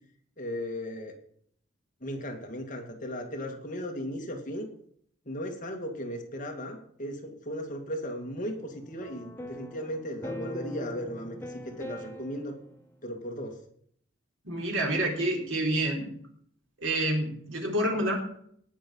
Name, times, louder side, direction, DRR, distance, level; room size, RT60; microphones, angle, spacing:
voice 1, 0.4-1.1 2.0-4.7 5.3-12.6 13.0-13.6, equal, 40° left, 2 dB, 2.2 m, -36 dB
sound 1, 8.4-12.9, equal, 10° left, 1.0 m, -42 dB
voice 2, 14.4-16.1 16.8-18.1, right 1 dB, 75° right, 0 dB, 3.9 m, -28 dB
18.5 x 6.3 x 5.5 m, 0.63 s
head